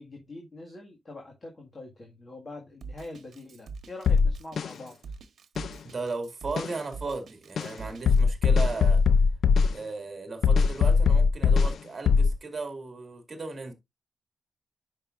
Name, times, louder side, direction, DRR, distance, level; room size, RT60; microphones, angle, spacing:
voice 1, 0.0-5.0, left 2 dB, 30° left, 1.8 m, -44 dB
Drum kit, 2.8-8.2, right 4 dB, 60° right, 1.3 m, -44 dB
sound 1, 4.1-4.7 5.6-5.7 6.6-6.7 7.6-7.7 8.1-9.7 10.4-11.7 12.1-12.3, left 5 dB, 60° left, 0.4 m, -20 dB
voice 2, 5.9-9.0 9.7-13.7, right 3 dB, 30° right, 2.2 m, -36 dB
10.0 x 5.6 x 2.5 m
wide cardioid pair, 155°, 0 cm